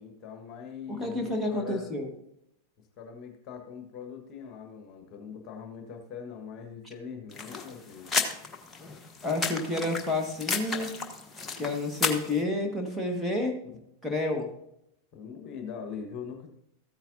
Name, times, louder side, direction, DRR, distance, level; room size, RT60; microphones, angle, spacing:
voice 1, 0.0-1.9 3.0-8.1 13.7-13.8 15.1-16.5, left 6 dB, 35° left, 3 dB, 1.4 m, -42 dB
voice 2, 0.9-2.1 9.2-10.9 11.6-13.5 14.0-14.5, left 2 dB, ahead, -1 dB, 1.6 m, -30 dB
sound 1, 7.3-12.4, left 4 dB, 15° left, 1.2 m, -33 dB
14.0 x 8.9 x 2.7 m, 0.79 s
figure-of-eight pair, 90°, 0 cm